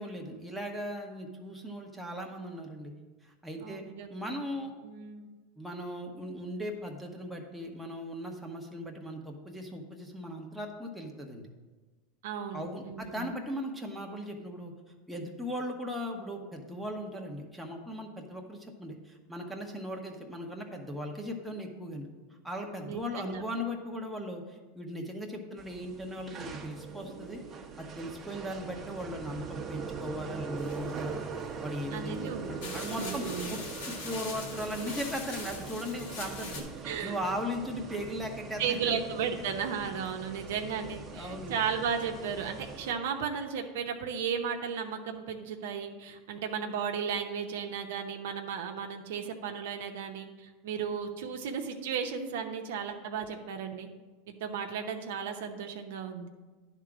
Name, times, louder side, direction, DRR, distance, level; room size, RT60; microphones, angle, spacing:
voice 1, 0.0-2.9 3.2-3.8 4.1-4.7 5.6-11.4 12.5-14.7 15.1-22.1 22.4-27.4 27.8-31.1 31.6-33.6 33.9-36.6 37.0-39.0 41.1-41.6, equal, ahead, 0 dB, 1.1 m, -38 dB
voice 2, 3.6-4.4 4.8-5.3 12.2-13.3 22.8-23.4 31.9-33.6 36.8-37.2 38.6-53.9 54.3-56.3, right 7 dB, 75° right, 3 dB, 0.8 m, -35 dB
sound 1, 25.6-42.9, right 5 dB, 25° right, 1.0 m, -42 dB
sound 2, 30.6-31.5 32.1-32.2 32.6-36.6, left 3 dB, 80° left, 2.1 m, -42 dB
10.0 x 3.7 x 6.1 m, 1.3 s
supercardioid pair, 115°, 0 cm